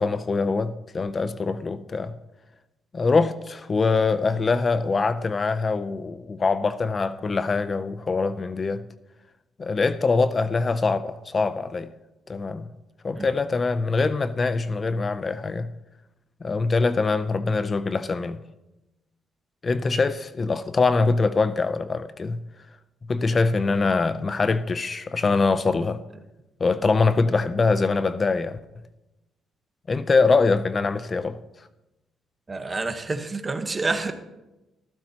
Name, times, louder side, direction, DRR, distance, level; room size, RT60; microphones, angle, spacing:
voice 1, 0.0-2.1 2.9-8.9 9.6-11.9 12.3-12.6 13.0-15.7 16.4-18.4 19.6-22.4 23.1-26.0 26.6-28.6 29.9-31.4, left 4 dB, 35° left, 0.5 m, -23 dB
voice 2, 32.5-34.1, right 3 dB, 25° right, 1.1 m, -28 dB
15.0 x 13.5 x 2.9 m
cardioid pair, 90°, 0 cm